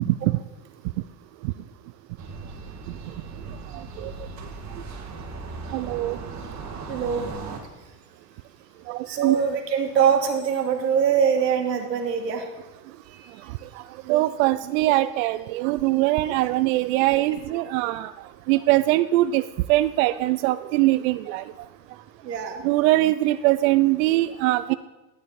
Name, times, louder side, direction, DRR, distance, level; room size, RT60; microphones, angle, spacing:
sound 1, 2.2-7.6, right 4 dB, 35° right, 2.2 m, -37 dB
voice 1, 5.7-6.2 9.2-9.4 14.1-18.0 18.5-19.4 19.7-21.4 22.6-24.7, right 17 dB, 60° right, 13 dB, 0.5 m, -21 dB
voice 2, 6.9-7.3 9.1-12.5 13.1-13.3 17.0-17.1 22.2-22.6, right 7 dB, 90° right, 4 dB, 1.8 m, -23 dB
13.0 x 9.0 x 4.1 m, 1.1 s
hypercardioid pair, 95°, 49 cm